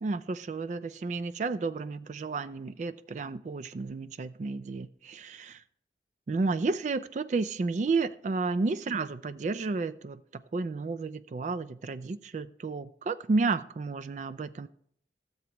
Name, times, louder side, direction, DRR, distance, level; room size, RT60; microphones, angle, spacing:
voice 1, 0.0-5.6 6.3-14.7, right 3 dB, 40° right, 0.3 m, -32 dB
16.0 x 7.3 x 3.0 m
head